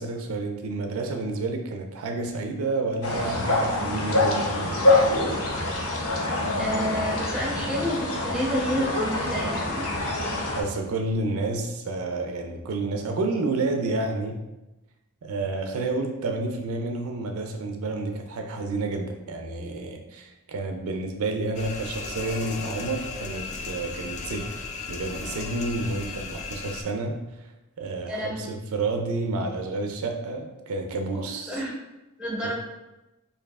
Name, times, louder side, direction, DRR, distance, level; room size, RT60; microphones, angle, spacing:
voice 1, 0.0-4.8 10.5-14.4 15.2-24.5 24.9-27.2 27.8-31.6 32.4-32.5, right 2 dB, 70° right, 4 dB, 0.4 m, -30 dB
sound 1, 3.0-10.6, left 2 dB, 75° left, 0.7 m, -25 dB
voice 2, 6.6-9.9 28.1-28.6 31.1-31.7 32.2-32.5, equal, 5° right, -4 dB, 0.7 m, -30 dB
sound 2, 21.5-26.8, left 4 dB, 35° left, 0.3 m, -36 dB
4.6 x 2.6 x 2.3 m, 1.0 s
head